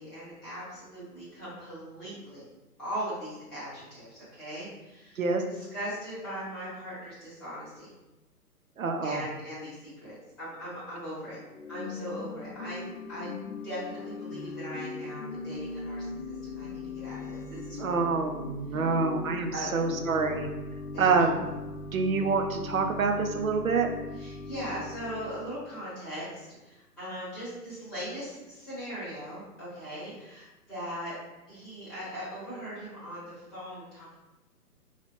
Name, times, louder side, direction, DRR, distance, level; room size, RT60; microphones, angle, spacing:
voice 1, 0.0-2.4 2.8-5.2 5.5-7.9 9.0-11.4 11.7-13.3 13.6-18.2 19.5-19.7 20.9-21.5 24.1-31.1 31.5-34.2, equal, ahead, -11 dB, 1.0 m, -39 dB
voice 2, 8.8-9.2 17.8-20.5 21.0-21.4 21.9-23.9, right 4 dB, 60° right, 3 dB, 0.6 m, -26 dB
Organ / Church bell, 11.5-25.6, left 3 dB, 40° left, 0.5 m, -40 dB
4.3 x 2.4 x 3.0 m, 1.0 s
figure-of-eight pair, 135°, 48 cm